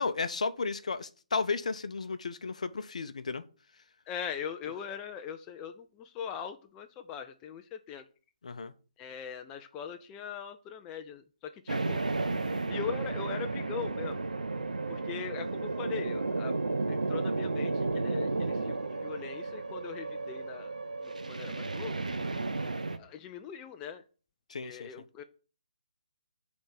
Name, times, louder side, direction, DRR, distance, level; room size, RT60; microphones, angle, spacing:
voice 1, 0.0-3.4 8.4-8.7 24.5-24.9, left 4 dB, 65° left, 0.6 m, -33 dB
voice 2, 4.1-8.0 9.0-12.1 12.7-14.2 14.9-16.6 16.9-20.7 21.0-22.0 22.9-24.0 24.6-25.2, left 8 dB, 15° left, 0.4 m, -41 dB
sound 1, 11.7-23.0, right 3 dB, 80° right, 0.7 m, -33 dB
7.0 x 3.5 x 5.8 m
figure-of-eight pair, 145°, 4 cm